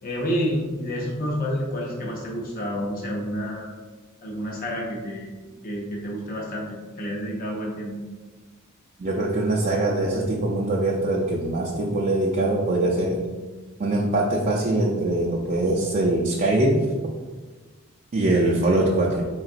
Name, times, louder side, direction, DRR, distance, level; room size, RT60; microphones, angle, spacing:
voice 1, 0.0-3.7 4.2-5.3 5.6-8.0, equal, 45° left, -3 dB, 0.6 m, -29 dB
voice 2, 9.0-13.3 13.8-16.9 18.1-19.2, right 2 dB, 40° right, -2 dB, 0.4 m, -22 dB
3.9 x 3.6 x 2.5 m, 1.3 s
head